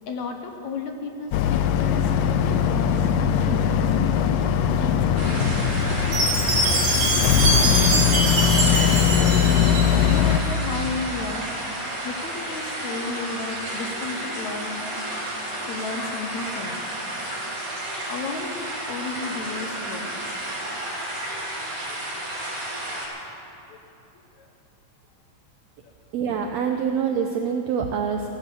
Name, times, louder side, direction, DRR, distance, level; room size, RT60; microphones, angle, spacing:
voice 1, 0.1-4.1 4.8-5.9 7.2-9.1 10.0-11.5 12.0-15.0 15.7-16.8 18.1-20.1 21.2-21.3 22.1-22.2 23.7-23.8 24.4-24.5 25.8-25.9, left 4 dB, 70° left, 5 dB, 2.0 m, -34 dB
Boat Water vehicle, 1.3-10.4, left 8 dB, 90° left, 2.3 m, -21 dB
sound 1, 5.2-23.1, right 1 dB, 40° right, 4.8 m, -32 dB
Chime, 6.1-10.3, right 2 dB, 55° right, 3.9 m, -23 dB
voice 2, 26.1-28.3, right 7 dB, 80° right, 4 dB, 1.5 m, -25 dB
15.5 x 13.5 x 7.0 m, 2.9 s
omnidirectional pair, 3.9 m